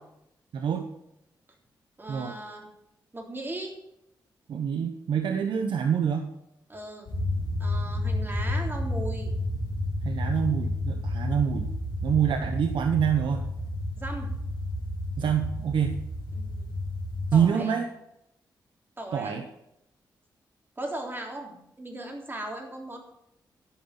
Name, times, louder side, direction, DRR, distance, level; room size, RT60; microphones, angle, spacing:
voice 1, 0.5-0.9 2.1-2.4 4.5-6.3 10.0-11.7 12.0-13.4 15.2-16.0 17.3-17.9 19.1-19.4, right 7 dB, 75° right, 6 dB, 1.0 m, -26 dB
voice 2, 2.0-2.7 3.1-3.7 6.7-7.1 7.6-9.3 14.0-14.3 16.3-16.7 17.3-17.7 19.0-19.4 20.8-23.0, right 1 dB, 25° right, 1 dB, 3.5 m, -37 dB
sound 1, 7.1-17.4, left 1 dB, 70° left, 3.8 m, -31 dB
13.0 x 5.7 x 8.9 m, 0.82 s
cardioid pair, 60°, 8 cm